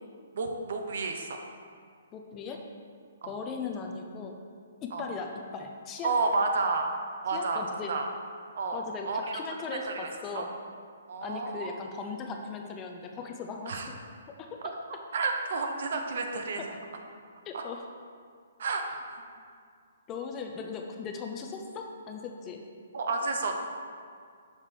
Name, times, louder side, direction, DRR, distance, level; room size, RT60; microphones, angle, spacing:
voice 1, 0.3-1.3 3.2-3.4 4.9-5.0 6.0-6.9 7.2-8.1 8.5-9.4 9.9-10.1 10.3-10.5 11.1-11.7 13.7-13.9 14.6-14.7 15.1-16.8 17.5-17.6 18.6-18.8 19.1-19.2 22.9-23.5, right 3 dB, 60° right, 3 dB, 0.8 m, -30 dB
voice 2, 2.1-2.6 3.3-4.3 4.8-6.1 7.3-7.9 8.7-10.5 11.2-14.0 14.4-14.6 17.5-17.9 20.1-22.6, left 5 dB, 20° left, 2 dB, 0.4 m, -38 dB
6.5 x 4.8 x 3.7 m, 2.1 s
hypercardioid pair, 160°, 0 cm